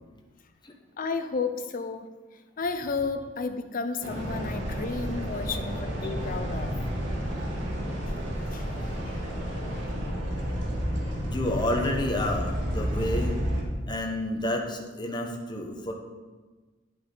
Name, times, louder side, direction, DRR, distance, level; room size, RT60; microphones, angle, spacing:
voice 1, 1.0-2.1 2.6-6.8 8.5-8.7 9.1-9.2, left 4 dB, 45° left, 9 dB, 0.6 m, -32 dB
sound 1, 4.0-13.6, equal, 75° right, 1.8 m, -31 dB
voice 2, 11.2-13.4 13.9-15.9, left 1 dB, 25° left, 1 dB, 1.0 m, -30 dB
10.5 x 5.8 x 3.9 m, 1.3 s
head